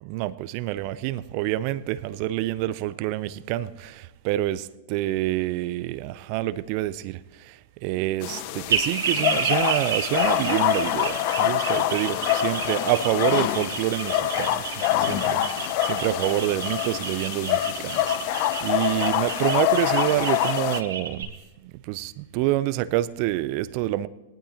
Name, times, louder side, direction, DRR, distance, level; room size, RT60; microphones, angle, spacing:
voice 1, 0.0-21.3 21.6-24.1, right 15 dB, 50° right, 0.5 m, -27 dB
sound 1, 8.2-20.8, left 13 dB, 50° left, 0.6 m, -25 dB
sound 2, 8.7-21.2, right 6 dB, 80° right, 2.6 m, -31 dB
18.5 x 11.5 x 2.9 m
hypercardioid pair, 115°, 0 cm